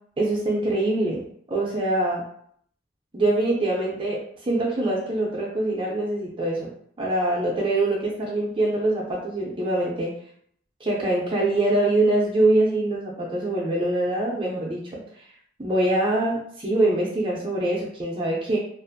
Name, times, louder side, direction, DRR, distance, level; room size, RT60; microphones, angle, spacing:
voice 1, 0.2-2.2 3.1-6.7 7.0-10.1 10.8-15.0 15.6-18.6, right 2 dB, 30° right, -3 dB, 0.5 m, -24 dB
2.5 x 2.5 x 2.6 m, 0.64 s
head